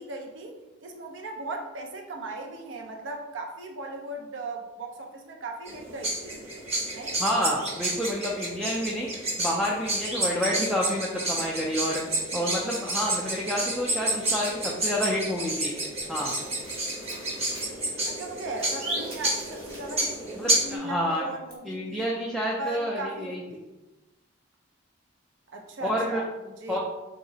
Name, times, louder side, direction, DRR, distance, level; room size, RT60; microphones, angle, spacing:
voice 1, 0.0-6.4 6.9-7.2 18.0-22.1 22.6-23.7 25.5-26.8, right 2 dB, 65° right, 2 dB, 0.5 m, -38 dB
sound 1, 5.7-20.8, right 1 dB, 35° right, 0.8 m, -30 dB
voice 2, 7.2-12.0 12.3-15.7 16.1-16.3 20.3-21.2 21.7-23.4 25.8-26.2 26.7-26.8, equal, ahead, -4 dB, 0.3 m, -29 dB
sound 2, 14.4-15.5 15.8-17.9 18.2-20.3 20.6-20.7 21.5-21.6, right 1 dB, 50° right, 1.1 m, -49 dB
4.0 x 2.7 x 2.7 m, 1.1 s
head